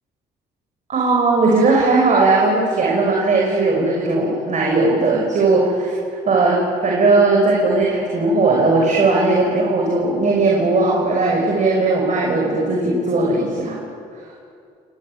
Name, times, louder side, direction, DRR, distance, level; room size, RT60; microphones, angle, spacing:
voice 1, 0.9-6.0 6.2-13.8, right 3 dB, 55° right, -2 dB, 6.2 m, -17 dB
29.5 x 18.5 x 9.2 m, 2.3 s
supercardioid pair, 75°, 15 cm